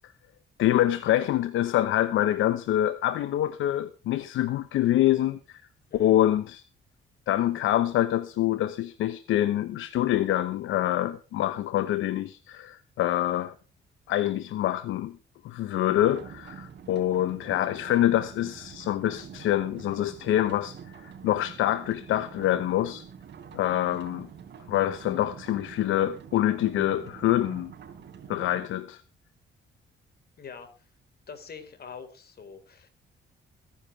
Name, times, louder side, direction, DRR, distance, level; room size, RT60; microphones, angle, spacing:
voice 1, 0.6-5.6 5.9-6.6 7.3-13.5 14.1-15.2 15.4-23.0 23.5-24.3 24.7-27.7 28.3-29.0, left 13 dB, 80° left, 1.0 m, -26 dB
sound 1, 15.9-28.7, right 7 dB, 60° right, 4.0 m, -46 dB
voice 2, 30.4-30.9 31.3-32.9, left 6 dB, 50° left, 4.2 m, -44 dB
23.5 x 10.5 x 3.3 m
cardioid pair, 90°, 20 cm